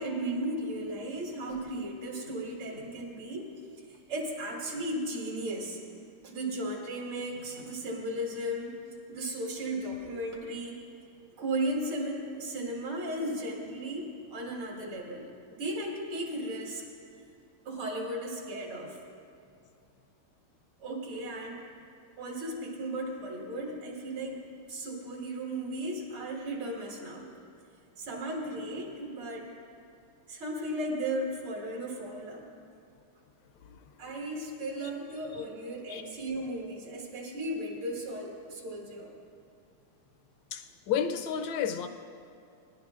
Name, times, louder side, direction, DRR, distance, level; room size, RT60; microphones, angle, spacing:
voice 1, 0.0-3.5 3.9-5.8 6.2-8.7 9.1-10.8 11.4-16.8 17.6-19.0 20.8-21.6 22.2-27.3 28.0-29.5 30.3-32.5 34.0-39.1, right 1 dB, 80° right, -1 dB, 2.6 m, -35 dB
voice 2, 33.6-34.3 35.3-35.4 35.9-36.0 40.5-41.9, left 8 dB, 75° left, 8 dB, 1.1 m, -33 dB
23.0 x 10.5 x 2.4 m, 2.5 s
omnidirectional pair, 2.3 m